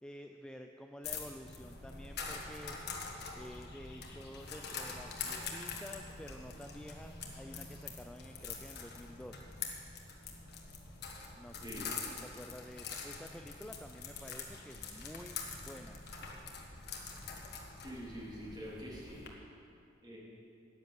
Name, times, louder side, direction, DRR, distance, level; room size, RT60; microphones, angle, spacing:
voice 1, 0.0-2.8 3.3-9.5 11.4-15.4 15.7-16.0, left 1 dB, 5° left, 4 dB, 0.4 m, -50 dB
sound 1, 1.0-19.3, left 5 dB, 60° left, 1.6 m, -45 dB
voice 2, 11.6-11.9 17.8-19.2 20.0-20.2, equal, 25° right, -6 dB, 3.4 m, -45 dB
10.5 x 9.5 x 7.6 m, 2.6 s
head